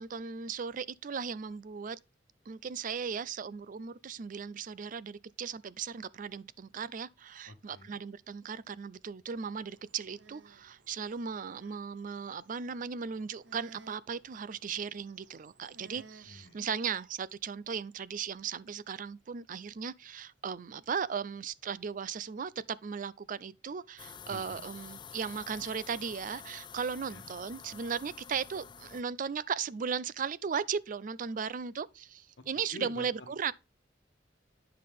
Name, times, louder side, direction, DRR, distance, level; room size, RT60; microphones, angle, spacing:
voice 1, 0.0-2.0 2.5-33.5, right 6 dB, 45° right, 0.4 m, -37 dB
voice 2, 7.5-8.0 15.9-16.6 24.3-24.6 27.1-27.3 32.7-33.5, left 1 dB, 85° left, 1.2 m, -49 dB
sound 1, 9.3-16.9, right 3 dB, 90° right, 0.9 m, -59 dB
sound 2, 24.0-29.0, left 7 dB, 25° left, 0.4 m, -49 dB
9.5 x 5.7 x 3.6 m
head